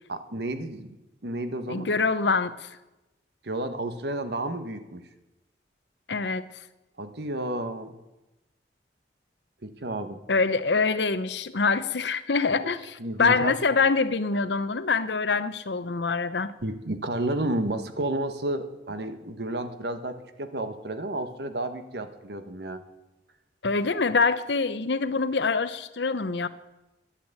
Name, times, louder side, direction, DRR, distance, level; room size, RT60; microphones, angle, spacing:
voice 1, 0.1-0.9 1.2-1.9 3.4-5.1 7.0-8.0 9.6-10.2 13.0-13.5 16.6-22.8, right 1 dB, 70° right, 1.3 m, -31 dB
voice 2, 1.7-2.7 6.1-6.4 10.3-16.5 23.6-26.5, left 4 dB, 85° left, 0.8 m, -25 dB
11.5 x 10.0 x 9.0 m
head